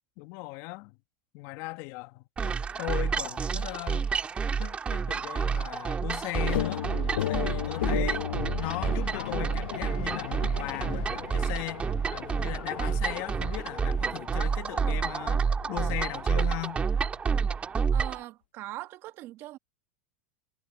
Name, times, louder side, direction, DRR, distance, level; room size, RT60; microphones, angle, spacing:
voice 1, 0.2-1.0 1.3-4.1 4.6-6.9 7.3-8.3 8.6-16.8, left 23 dB, 55° left, 1.9 m, -38 dB
sound 1, 2.4-18.2, right 6 dB, 20° right, 2.3 m, -29 dB
sound 2, 6.3-17.3, left 13 dB, 75° left, 1.4 m, -36 dB
voice 2, 17.9-19.6, right 16 dB, 45° right, 2.1 m, -41 dB
hypercardioid pair, 110°, 5 cm